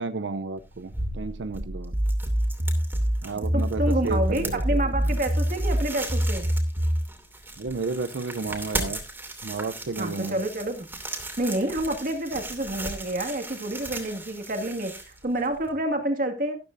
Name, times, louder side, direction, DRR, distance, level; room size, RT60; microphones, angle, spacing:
voice 1, 0.0-1.9 3.2-5.2 7.6-9.0 9.4-10.4, right 3 dB, 90° right, 0.6 m, -32 dB
sound 1, 0.6-15.7, right 2 dB, 10° right, 2.7 m, -38 dB
sound 2, 1.6-7.1, equal, 30° right, 1.2 m, -25 dB
voice 2, 3.4-6.5 10.0-10.9 11.4-16.6, right 1 dB, 50° right, 2.1 m, -28 dB
13.5 x 12.5 x 2.6 m
head